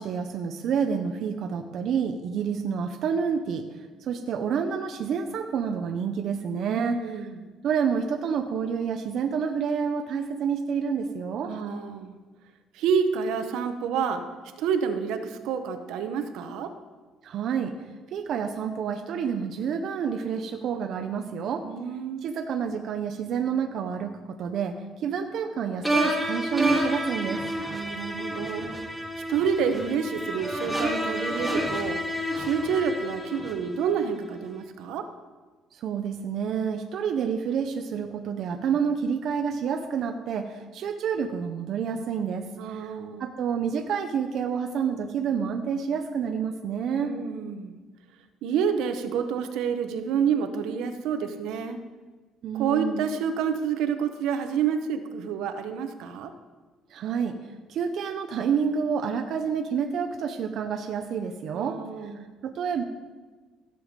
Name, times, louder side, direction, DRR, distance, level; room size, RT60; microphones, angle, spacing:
voice 1, 0.0-3.7 4.0-7.3 7.6-11.5 17.2-17.7 18.1-21.7 22.2-27.5 35.7-42.9 43.2-47.2 52.4-53.1 56.9-57.4 57.7-62.1 62.4-62.8, right 6 dB, 55° right, 5 dB, 0.7 m, -28 dB
voice 2, 6.6-7.4 11.5-12.2 12.7-14.3 14.6-16.7 21.6-22.3 27.7-28.8 29.3-32.0 32.4-35.1 42.6-43.3 46.9-47.7 48.4-51.8 52.5-56.3 61.5-62.3, right 7 dB, 80° right, 8 dB, 1.0 m, -28 dB
sound 1, 25.8-34.0, equal, ahead, 1.3 m, -29 dB
15.0 x 7.0 x 5.2 m, 1.3 s
cardioid pair, 150°, 0 cm